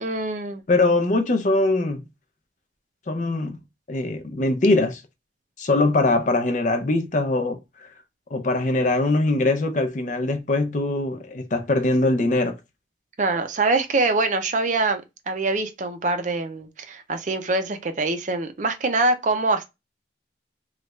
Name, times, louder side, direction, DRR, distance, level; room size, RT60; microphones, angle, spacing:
voice 1, 0.0-0.6 13.2-15.0 15.3-19.6, right 3 dB, 45° right, 0.5 m, -24 dB
voice 2, 0.7-2.0 3.1-3.6 3.9-5.0 5.6-7.9 8.3-12.6, left 2 dB, 45° left, 0.6 m, -22 dB
3.1 x 2.4 x 3.0 m
head